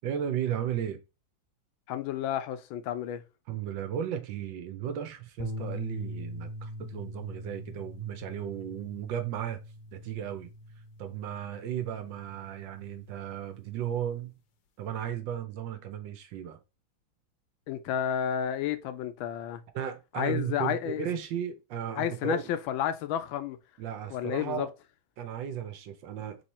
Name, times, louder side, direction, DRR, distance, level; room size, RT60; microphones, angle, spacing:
voice 1, 0.0-1.0 3.5-9.6 9.9-10.5 11.0-14.3 14.8-16.6 19.7-22.4 23.8-24.7 25.2-26.4, right 9 dB, 70° right, 1.4 m, -35 dB
voice 2, 1.9-3.2 17.7-19.6 20.2-21.1 22.0-23.6 24.1-24.7, left 10 dB, 80° left, 1.4 m, -31 dB
sound 1, 5.4-13.8, equal, 65° left, 1.2 m, -42 dB
3.7 x 3.1 x 4.1 m
omnidirectional pair, 2.2 m